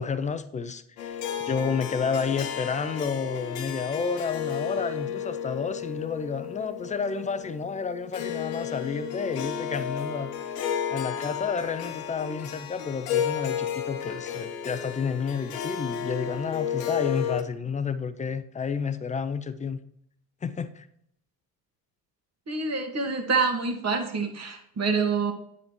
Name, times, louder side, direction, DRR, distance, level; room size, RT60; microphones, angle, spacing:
voice 1, 0.0-10.6 10.9-19.8 20.4-20.9, left 5 dB, 15° left, 0.6 m, -30 dB
Harp, 1.0-17.4, left 8 dB, 75° left, 0.9 m, -33 dB
voice 2, 22.5-25.3, right 4 dB, 30° right, 1.5 m, -26 dB
9.8 x 8.3 x 3.1 m
figure-of-eight pair, 50°, 49 cm